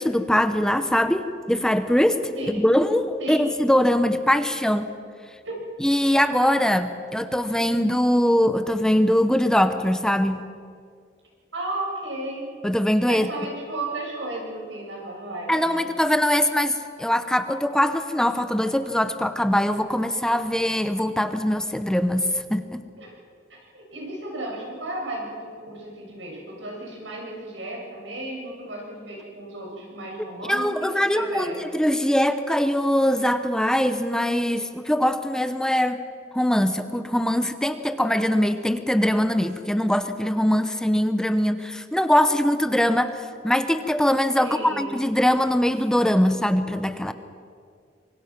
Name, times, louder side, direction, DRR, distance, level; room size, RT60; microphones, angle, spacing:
voice 1, 0.0-2.2 2.5-4.9 5.8-10.4 12.6-13.3 15.5-22.8 30.5-36.0 36.3-43.1 43.4-47.1, equal, 5° left, 10 dB, 0.9 m, -22 dB
voice 2, 11.5-12.5 13.1-15.8 23.0-23.1 23.5-31.6 44.4-45.0, right 2 dB, 90° right, -2 dB, 7.2 m, -34 dB
26.0 x 23.0 x 5.9 m, 2.2 s
head